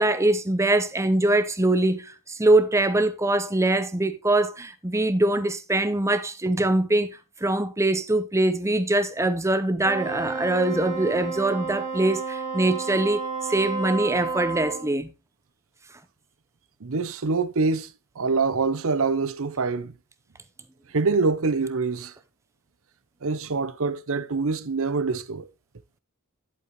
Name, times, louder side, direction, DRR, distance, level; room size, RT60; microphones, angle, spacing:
voice 1, 0.0-7.1 7.4-13.2 13.5-15.1, right 2 dB, 15° right, 0.8 m, -23 dB
Wind instrument woodwind instrument, 9.8-14.9, right 4 dB, 35° right, 2.7 m, -31 dB
voice 2, 16.8-19.9 20.9-22.1 23.2-25.5, right 4 dB, 65° right, 0.7 m, -25 dB
10.5 x 8.3 x 3.2 m
head